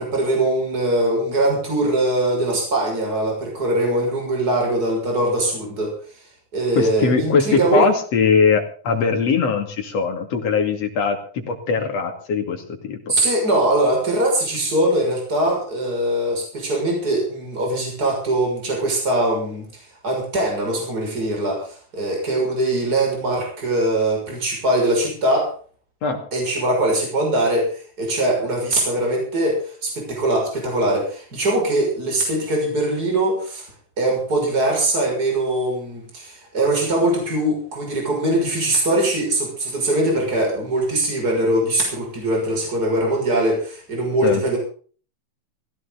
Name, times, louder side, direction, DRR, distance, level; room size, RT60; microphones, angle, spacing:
voice 1, 0.0-5.9 6.5-7.9 13.1-25.5 26.3-33.7 34.0-44.6, right 1 dB, 30° right, 0 dB, 6.7 m, -22 dB
voice 2, 6.8-13.2 26.0-26.3 44.2-44.4, left 5 dB, 60° left, 4 dB, 3.5 m, -21 dB
17.5 x 16.0 x 4.1 m, 0.43 s
omnidirectional pair, 3.4 m